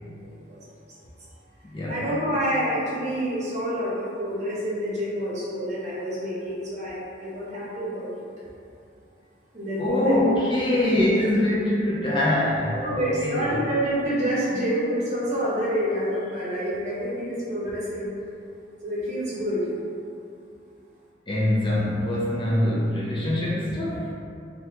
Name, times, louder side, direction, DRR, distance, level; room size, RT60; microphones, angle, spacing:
voice 1, 0.0-0.6 1.9-8.1 9.5-10.4 12.7-18.1 18.8-19.7, equal, 40° right, -8 dB, 0.9 m, -28 dB
voice 2, 1.7-2.1 9.8-13.5 21.3-24.1, left 1 dB, 30° left, -6 dB, 0.5 m, -24 dB
2.9 x 2.3 x 3.4 m, 2.5 s
head